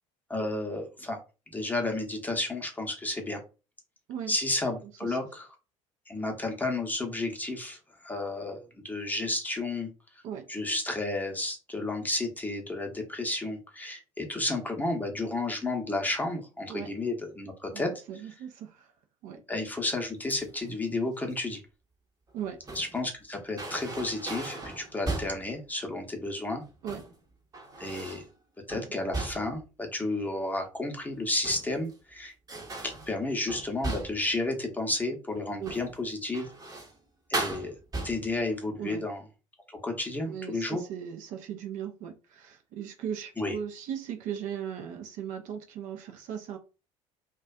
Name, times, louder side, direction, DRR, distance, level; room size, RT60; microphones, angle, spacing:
voice 1, 0.3-1.2 1.5-3.4 4.3-5.5 6.1-9.9 10.5-17.9 19.5-21.6 22.7-26.6 27.8-28.2 28.7-32.3 32.8-36.5 37.3-37.7 38.0-39.2 39.8-40.8 43.4-43.5, left 2 dB, 10° left, 0.8 m, -32 dB
voice 2, 17.7-18.9 19.2-19.4 22.3-22.6 26.8-27.0 28.7-28.9 35.6-35.8 38.8-39.1 40.3-46.6, right 9 dB, 50° right, 0.5 m, -38 dB
sound 1, 20.3-20.7 22.3-23.0 23.6-25.5 26.6-27.2 27.5-28.3 28.7-29.7 31.2-31.9 32.5-34.3 35.6-36.0 36.3-37.0 37.3-38.4, right 2 dB, 20° right, 0.8 m, -37 dB
2.4 x 2.2 x 2.3 m
hypercardioid pair, 65°, 17 cm